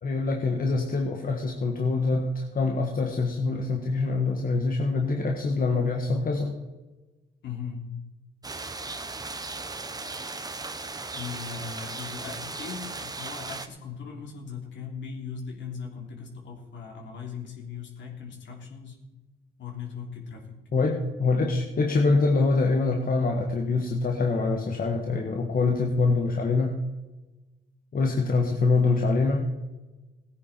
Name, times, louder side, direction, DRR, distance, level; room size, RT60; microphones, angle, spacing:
voice 1, 0.0-6.6 20.7-26.8 27.9-29.4, left 3 dB, 45° left, 2 dB, 1.6 m, -25 dB
voice 2, 7.4-7.8 11.1-19.0 19.6-20.6 28.4-28.5, left 6 dB, 65° left, 0 dB, 3.3 m, -39 dB
sound 1, 8.4-13.7, right 3 dB, 20° right, 1.0 m, -37 dB
17.0 x 9.6 x 4.4 m, 1.1 s
cardioid pair, 90°, 20 cm